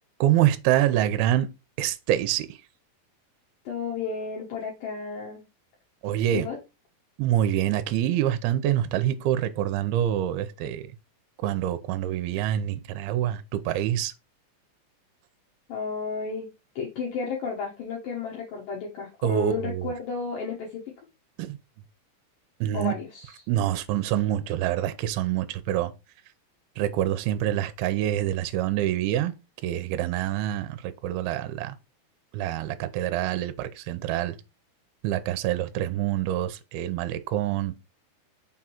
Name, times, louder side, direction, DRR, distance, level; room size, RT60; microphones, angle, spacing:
voice 1, 0.2-1.5 1.8-2.6 6.0-6.5 7.2-10.9 11.4-14.1 19.2-19.9 21.4-21.6 22.6-23.0 23.5-25.9 26.8-29.3 29.6-31.8 32.3-34.4 35.0-37.7, right 12 dB, 80° right, 2.5 m, -26 dB
voice 2, 3.7-5.4 6.3-6.6 15.7-16.5 16.8-20.8 22.7-23.4, left 4 dB, 65° left, 2.6 m, -32 dB
6.1 x 3.7 x 4.3 m
omnidirectional pair, 4.8 m